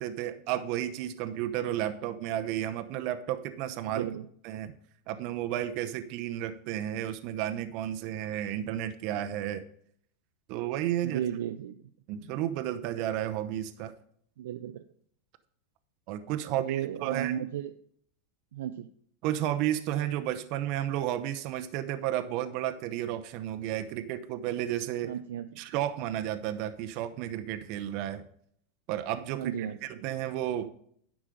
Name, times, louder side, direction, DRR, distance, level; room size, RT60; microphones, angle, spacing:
voice 1, 0.0-4.1 4.4-4.7 5.1-9.7 10.5-11.2 12.1-13.9 16.1-17.3 19.2-25.1 25.6-28.2 28.9-30.7, right 12 dB, 55° right, 9 dB, 0.8 m, -32 dB
voice 2, 3.9-4.3 11.0-11.8 14.4-14.8 16.4-17.7 18.5-18.9 25.0-25.6 29.4-29.9, right 10 dB, 85° right, 7 dB, 0.5 m, -34 dB
10.0 x 6.2 x 5.1 m, 0.65 s
supercardioid pair, 125°, 0 cm